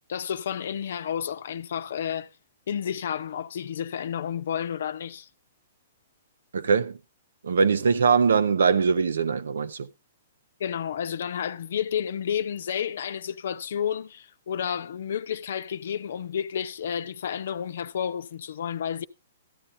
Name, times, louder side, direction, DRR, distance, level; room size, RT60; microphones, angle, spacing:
voice 1, 0.1-2.3 2.7-5.3 10.6-19.1, left 8 dB, 70° left, 0.8 m, -31 dB
voice 2, 6.5-7.0 7.4-9.9, right 5 dB, 80° right, 0.8 m, -22 dB
14.0 x 9.8 x 2.7 m
hypercardioid pair, 130°, 0 cm